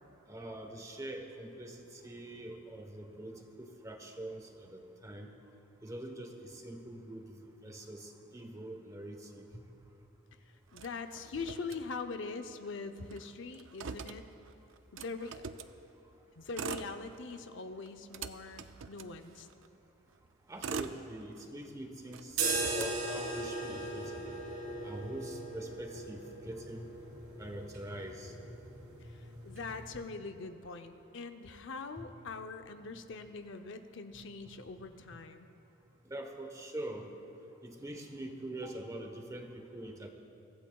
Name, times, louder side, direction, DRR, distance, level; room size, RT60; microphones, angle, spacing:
voice 1, 0.3-5.3 5.8-7.3 7.6-9.6 20.5-24.3 24.8-26.8 27.4-28.3 32.0-32.1 32.8-32.9 36.1-37.1 37.6-40.1, right 1 dB, 15° right, 4 dB, 1.0 m, -44 dB
voice 2, 10.7-14.2 14.9-15.4 16.4-19.5 29.4-35.5, left 4 dB, 60° left, 7 dB, 0.6 m, -42 dB
Motor vehicle (road), 10.7-12.3 12.6-12.7 13.0-15.8 16.4-17.5 17.9-19.7 20.3-21.7 22.1-23.7, right 5 dB, 65° right, 0.5 m, -44 dB
sound 1, 22.3-30.1, right 3 dB, 85° right, 3.7 m, -39 dB
23.0 x 15.0 x 2.3 m, 2.8 s
head